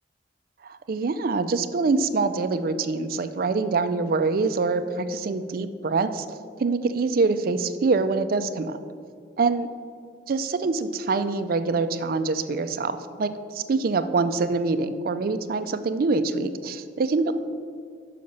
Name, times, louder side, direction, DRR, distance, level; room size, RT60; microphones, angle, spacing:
voice 1, 0.6-8.8 9.4-9.7 10.3-17.3, right 3 dB, 55° right, 11 dB, 0.4 m, -25 dB
5.8 x 5.3 x 6.5 m, 2.3 s
head